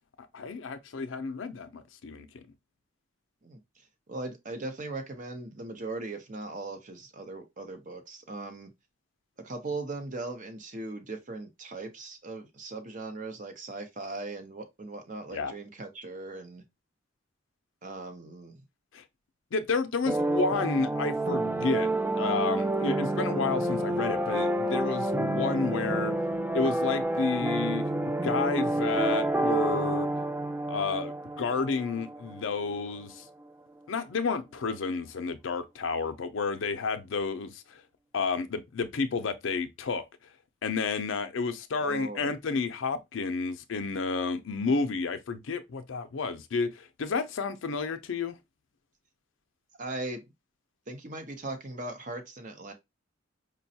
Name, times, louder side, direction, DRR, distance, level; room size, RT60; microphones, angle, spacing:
voice 1, 0.3-2.5 15.3-15.5 18.9-19.0 19.5-21.9 22.2-26.2 26.5-30.1 30.7-33.3 33.9-37.8 38.1-40.0 40.6-48.4, left 4 dB, 75° left, 0.5 m, -31 dB
voice 2, 4.1-8.7 9.4-16.6 17.8-18.6 20.0-20.2 41.8-42.3 49.8-50.2 50.9-52.7, right 2 dB, 40° right, 0.7 m, -39 dB
sound 1, 20.1-32.8, right 1 dB, 10° right, 0.3 m, -29 dB
5.0 x 2.2 x 2.7 m
head